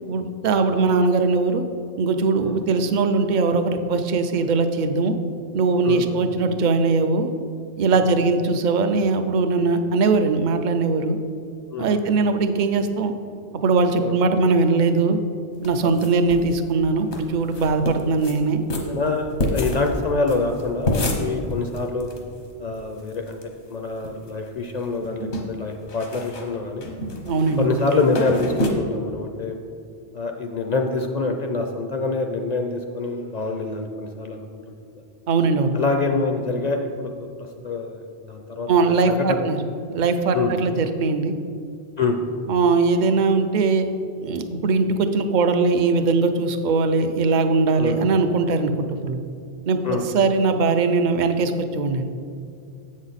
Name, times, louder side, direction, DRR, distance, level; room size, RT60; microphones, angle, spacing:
voice 1, 0.1-1.6 2.0-5.2 5.5-7.3 7.8-11.2 11.8-13.1 13.5-15.2 15.6-18.6 27.3-27.7 35.3-35.8 38.7-39.6 39.9-41.4 42.5-43.9 44.2-49.2 49.6-52.1, right 4 dB, 55° right, 8 dB, 0.6 m, -20 dB
voice 2, 5.8-6.2 7.9-8.1 11.7-12.0 14.0-14.2 15.8-16.0 18.9-22.1 22.6-23.4 23.7-26.9 27.6-29.6 30.1-35.0 35.7-37.3 37.6-38.7 39.1-39.5 40.3-40.5 42.0-42.2 47.8-48.0 49.8-50.0, left 3 dB, 50° left, 4 dB, 0.5 m, -26 dB
sound 1, 15.6-16.5 16.8-16.9 17.1-17.2 17.5-18.4 18.7-22.2 22.5-22.6 22.7-23.4 23.8-24.5 24.8-28.7, left 1 dB, 80° left, 1.3 m, -28 dB
7.9 x 6.3 x 4.0 m, 2.4 s
omnidirectional pair, 1.1 m